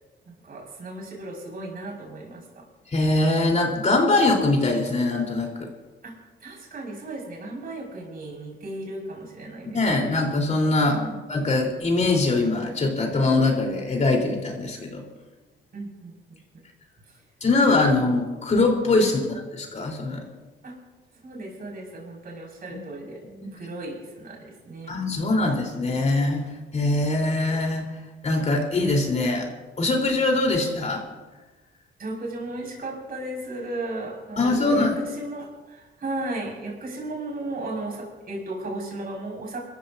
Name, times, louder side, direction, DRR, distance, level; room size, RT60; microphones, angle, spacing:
voice 1, 0.3-2.6 6.0-6.1 6.4-9.8 10.9-11.2 15.7-16.1 17.1-17.2 19.0-19.2 20.6-20.7 21.2-23.2 23.5-25.0 32.0-39.6, right 2 dB, 50° right, -2 dB, 5.7 m, -35 dB
voice 2, 2.9-5.7 9.7-11.0 11.3-15.0 17.4-20.2 23.3-23.5 24.9-26.4 26.7-27.8 28.2-29.5 29.8-31.0 34.4-34.9, left 2 dB, 35° left, 0 dB, 3.9 m, -22 dB
28.5 x 14.0 x 2.7 m, 1.2 s
cardioid pair, 90°, 20 cm